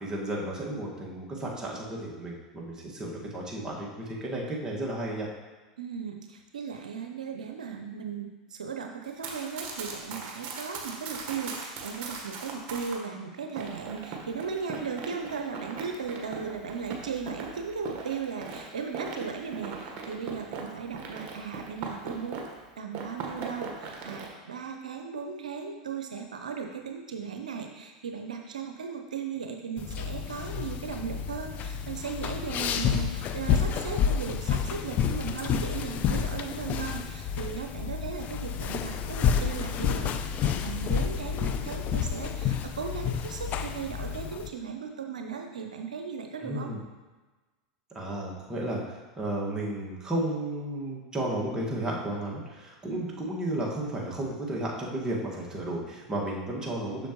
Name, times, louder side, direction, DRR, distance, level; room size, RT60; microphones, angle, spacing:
voice 1, 0.0-5.3 46.4-46.8 47.9-57.1, right 1 dB, 20° right, -3 dB, 1.8 m, -33 dB
voice 2, 5.8-22.5 22.8-46.7 52.9-53.1, right 6 dB, 90° right, 3 dB, 0.6 m, -37 dB
Run, 9.0-13.0 13.6-22.6 22.9-24.3, right 4 dB, 50° right, 1.3 m, -39 dB
sound 1, 29.8-44.5, left 7 dB, 40° left, 0.5 m, -30 dB
7.0 x 6.4 x 3.1 m, 1.2 s
hypercardioid pair, 95°, 4 cm